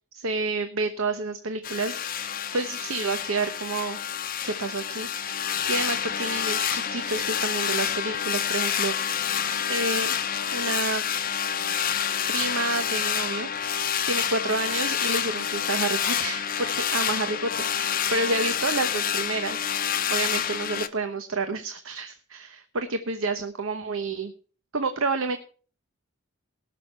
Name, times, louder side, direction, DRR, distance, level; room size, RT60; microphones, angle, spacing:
voice 1, 0.1-4.0 4.4-9.2 9.7-10.1 10.5-11.0 12.3-13.8 14.1-19.6 20.1-24.3 24.7-25.4, right 3 dB, 70° right, 8 dB, 1.0 m, -29 dB
sound 1, 1.6-20.9, left 9 dB, 45° left, 0.8 m, -28 dB
18.5 x 6.5 x 5.7 m, 0.40 s
head